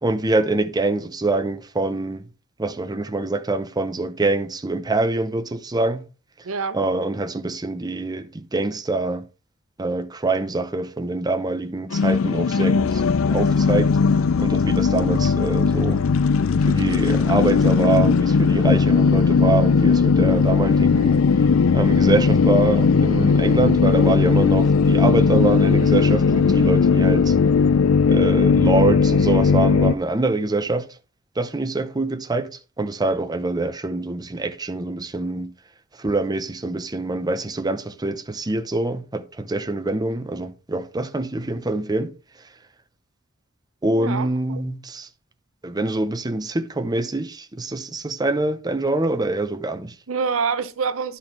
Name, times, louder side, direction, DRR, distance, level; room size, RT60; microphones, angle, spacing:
voice 1, 0.0-2.2 2.6-6.0 6.7-9.2 9.8-13.0 13.3-14.0 14.4-16.0 16.6-27.3 28.0-30.9 31.4-32.5 32.8-35.5 36.0-42.1 43.8-45.1 45.6-49.9, right 2 dB, 20° right, 0.7 m, -25 dB
voice 2, 6.4-6.8 44.0-44.6 50.1-51.2, right 5 dB, 75° right, 0.7 m, -26 dB
sound 1, 11.9-29.9, left 5 dB, 70° left, 0.4 m, -18 dB
10.5 x 4.2 x 5.8 m
head